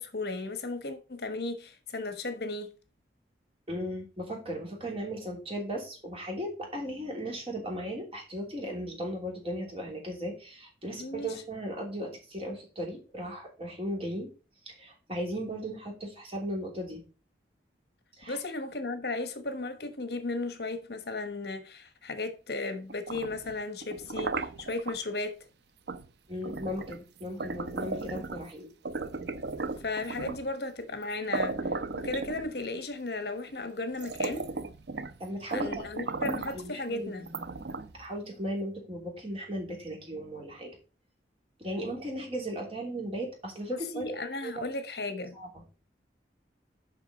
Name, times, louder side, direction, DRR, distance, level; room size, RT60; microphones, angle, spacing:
voice 1, 0.0-2.7 11.0-11.3 18.3-25.5 29.8-31.6 31.9-34.5 35.5-37.3 43.7-45.4, left 2 dB, 65° left, 1.2 m, -35 dB
voice 2, 3.7-14.3 14.6-17.0 18.2-18.4 26.3-28.7 35.2-37.5 37.9-40.7 41.6-44.6 45.0-45.6, equal, 30° right, 3.2 m, -37 dB
sound 1, 22.9-25.0 25.9-26.1 26.4-28.5 28.9-30.5 31.0-31.1 31.3-32.8 33.5-33.6 33.9-35.2 35.5-36.7 37.3-38.1, right 3 dB, 75° right, 0.6 m, -35 dB
7.3 x 5.5 x 5.3 m
head